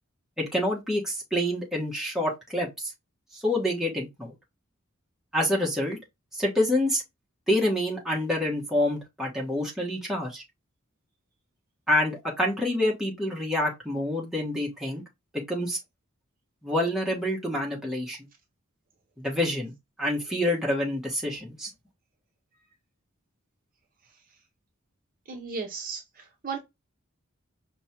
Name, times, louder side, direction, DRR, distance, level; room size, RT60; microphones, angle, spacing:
voice 1, 0.4-2.9 3.3-4.3 5.3-6.0 6.3-7.0 7.5-10.4 11.9-15.0 15.5-15.8 16.6-18.2 19.2-19.7 20.0-21.7, left 1 dB, ahead, 1.1 m, -27 dB
voice 2, 25.3-26.6, right 5 dB, 45° right, 0.7 m, -35 dB
5.3 x 2.1 x 2.8 m
head